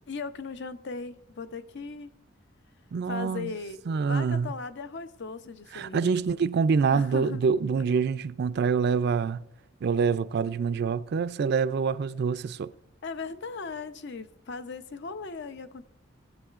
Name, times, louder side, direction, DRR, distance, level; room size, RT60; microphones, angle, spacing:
voice 1, 0.1-2.1 3.1-3.8 4.1-6.3 6.9-7.6 13.0-15.8, left 4 dB, 60° left, 0.6 m, -38 dB
voice 2, 2.9-3.5 3.9-4.5 5.7-9.4 9.8-12.7, right 5 dB, 55° right, 0.3 m, -26 dB
17.0 x 7.9 x 2.4 m
head